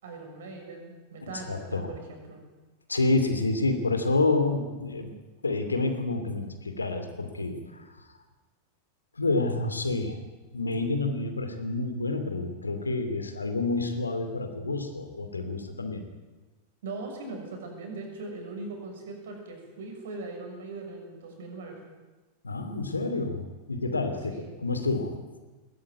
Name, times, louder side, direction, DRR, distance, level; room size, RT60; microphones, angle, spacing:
voice 1, 0.0-2.4 16.8-21.8 24.3-24.5, right 3 dB, 60° right, 3 dB, 6.5 m, -40 dB
voice 2, 1.2-1.9 2.9-5.1 5.4-7.9 9.2-10.2 10.5-16.0 22.4-24.3 24.6-25.1, left 3 dB, 80° left, 7 dB, 2.8 m, -28 dB
20.5 x 17.0 x 9.4 m, 1.2 s
figure-of-eight pair, 90°, 0 cm